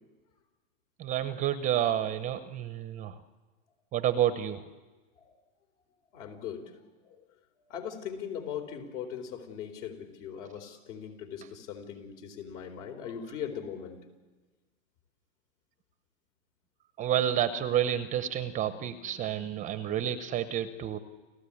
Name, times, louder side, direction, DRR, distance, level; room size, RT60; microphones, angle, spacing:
voice 1, 1.0-3.2 3.9-4.6 17.0-21.0, right 10 dB, 20° right, 11 dB, 0.7 m, -29 dB
voice 2, 6.1-6.6 7.1-7.2 7.7-14.0, left 8 dB, 60° left, 5 dB, 4.2 m, -39 dB
29.5 x 14.5 x 8.6 m, 1.3 s
hypercardioid pair, 135°, 40 cm